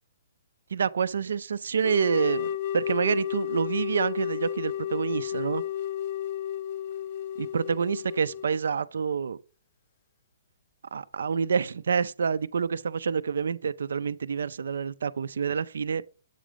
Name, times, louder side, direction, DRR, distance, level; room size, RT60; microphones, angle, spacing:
voice 1, 0.7-5.6 7.4-9.4 10.9-16.0, right 6 dB, 80° right, 0.4 m, -27 dB
sound 1, 1.8-8.6, left 11 dB, 45° left, 0.5 m, -32 dB
8.2 x 3.7 x 5.1 m
hypercardioid pair, 150°, 0 cm